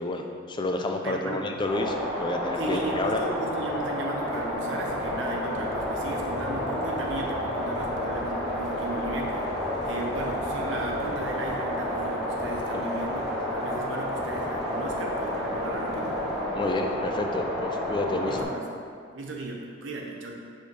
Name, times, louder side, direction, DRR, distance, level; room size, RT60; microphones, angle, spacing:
voice 1, 0.0-3.2 12.7-12.8 16.5-18.4, left 2 dB, 25° left, 3 dB, 0.4 m, -30 dB
voice 2, 1.0-1.5 2.6-16.2 18.3-18.7 19.1-20.4, right 2 dB, 70° right, 0 dB, 0.7 m, -36 dB
sound 1, 1.6-1.7 2.1-16.8, equal, 55° left, 1.5 m, -43 dB
sound 2, 1.7-18.4, left 1 dB, ahead, 1.5 m, -30 dB
5.0 x 4.4 x 5.2 m, 2.2 s
head